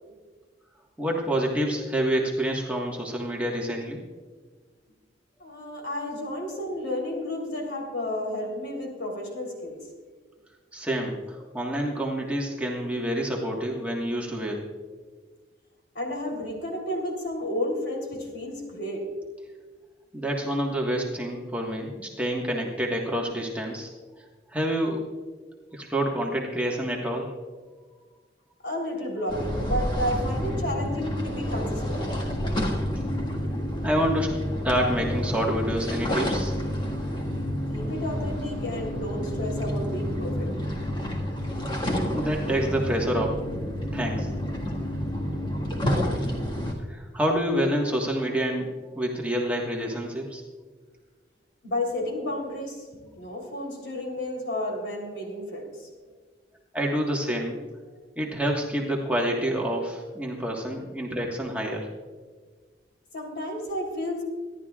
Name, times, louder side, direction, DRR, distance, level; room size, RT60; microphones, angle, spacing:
voice 1, 1.0-4.0 10.7-14.7 20.1-23.9 24.5-25.0 25.7-27.3 33.8-34.3 34.6-36.5 42.1-43.4 43.9-44.3 46.9-48.7 48.9-50.4 56.7-57.6 58.2-61.9, equal, 5° right, -2 dB, 1.5 m, -27 dB
voice 2, 5.4-9.8 16.0-19.1 28.6-32.0 37.7-40.5 51.6-55.9 63.1-64.2, left 1 dB, 65° left, 1 dB, 3.6 m, -32 dB
sound 1, 29.3-46.7, equal, 25° left, 1.8 m, -29 dB
25.5 x 11.5 x 2.4 m, 1.4 s
head